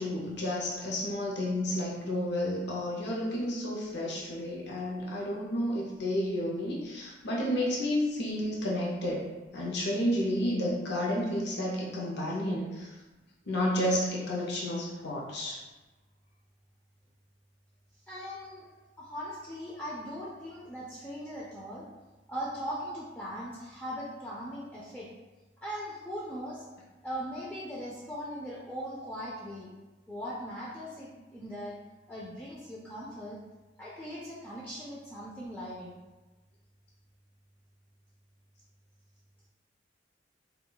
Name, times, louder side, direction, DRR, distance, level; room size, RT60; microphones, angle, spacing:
voice 1, 0.0-9.3 9.5-12.9 13.5-15.6, left 1 dB, 65° left, -4 dB, 0.6 m, -31 dB
voice 2, 18.1-18.7 19.0-21.8 22.3-25.1 25.6-26.7 27.0-29.7 30.1-31.8 32.1-33.4 33.8-36.0, equal, 10° left, -6 dB, 0.3 m, -39 dB
2.2 x 2.2 x 3.8 m, 1.2 s
head